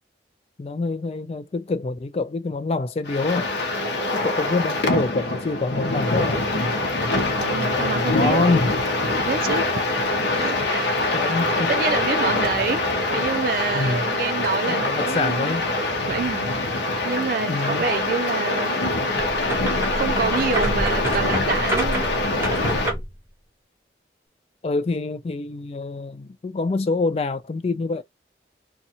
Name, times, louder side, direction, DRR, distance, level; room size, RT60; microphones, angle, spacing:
voice 1, 0.6-3.5 4.1-6.4 7.5-8.7 11.1-11.7 13.7-14.0 14.7-15.7 17.5-17.9 18.5-18.6 22.4-23.0 24.6-28.0, left 3 dB, 35° left, 0.3 m, -26 dB
sound 1, 3.0-22.9, left 2 dB, 75° left, 0.8 m, -24 dB
voice 2, 7.3-8.5 9.2-9.9 10.4-10.9 11.7-12.8 13.1-15.6 16.1-16.5 17.0-19.0 19.9-22.1, right 5 dB, 50° right, 0.3 m, -27 dB
sound 2, 19.1-23.2, right 1 dB, 15° right, 0.9 m, -28 dB
2.7 x 2.3 x 2.7 m
head